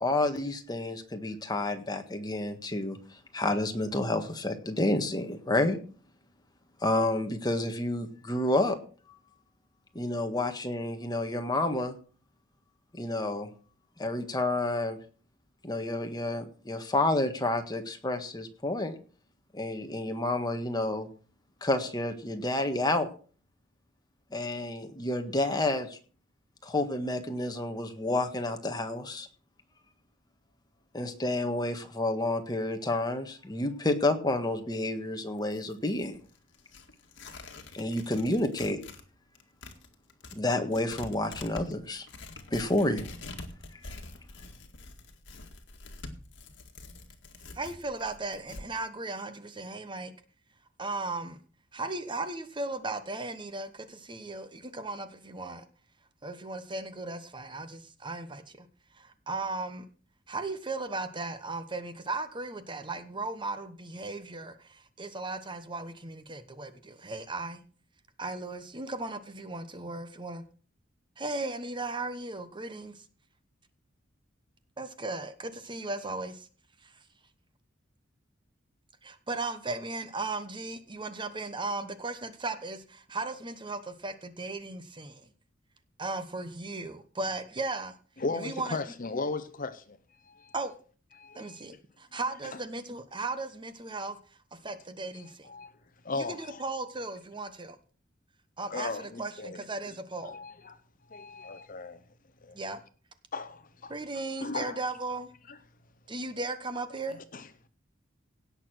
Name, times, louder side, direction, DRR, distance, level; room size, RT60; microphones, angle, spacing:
voice 1, 0.0-5.8 6.8-8.8 10.0-12.0 12.9-13.5 14.0-15.0 15.6-19.0 19.5-21.1 21.6-23.1 24.3-26.0 26.6-29.3 30.9-36.2 37.7-38.8 40.3-42.1 42.5-43.1 43.8-44.0, left 2 dB, 20° left, 1.6 m, -29 dB
Tearing, 35.4-39.1 39.3-48.7, left 3 dB, 65° left, 2.0 m, -46 dB
voice 2, 47.5-50.1 50.8-51.4 51.7-55.6 56.2-58.7 58.9-59.8 60.3-67.6 68.2-70.4 71.2-73.0 74.8-76.5 76.8-76.9 79.0-85.3 86.0-87.9 88.3-88.8 90.5-90.7 91.3-94.2 94.5-95.5 96.1-97.8 98.6-100.4 102.5-102.8 103.9-105.3 106.1-107.2, right 3 dB, 25° right, 1.1 m, -36 dB
voice 3, 88.2-90.0 90.2-90.5 91.2-91.7 95.1-95.7 96.0-96.6 98.7-99.6 100.2-100.8 101.1-102.0 102.4-102.6 103.3-103.9 104.4-104.8 105.5-105.6 107.1-107.5, left 3 dB, 45° left, 0.8 m, -37 dB
17.0 x 6.8 x 6.2 m
head